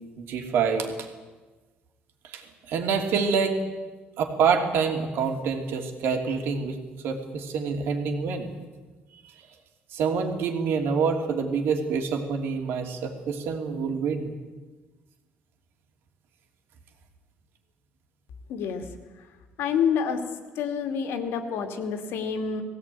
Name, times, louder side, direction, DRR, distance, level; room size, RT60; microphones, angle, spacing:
voice 1, 0.2-1.1 2.2-3.6 4.2-8.5 9.1-9.3 9.9-14.3, right 5 dB, 70° right, 4 dB, 3.0 m, -27 dB
voice 2, 18.5-18.8 19.6-20.2 20.6-22.6, left 7 dB, 80° left, 6 dB, 2.5 m, -27 dB
20.0 x 17.0 x 9.2 m, 1.3 s
cardioid pair, 165°, 4 cm